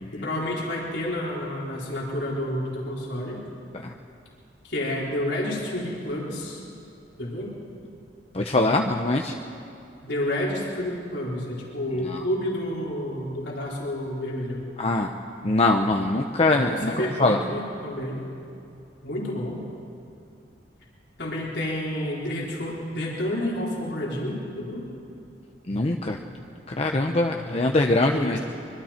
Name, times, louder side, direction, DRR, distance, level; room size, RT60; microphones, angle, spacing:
voice 1, 0.1-3.4 4.6-6.6 7.2-7.5 10.0-14.6 16.6-18.2 19.0-19.6 21.2-24.8 28.1-28.4, left 1 dB, 80° left, -4 dB, 4.3 m, -30 dB
voice 2, 8.3-9.3 14.8-15.1 15.4-16.9 17.2-17.4 25.7-26.2 26.7-28.4, left 2 dB, 35° left, 3 dB, 0.8 m, -22 dB
25.0 x 23.5 x 4.4 m, 2.6 s
head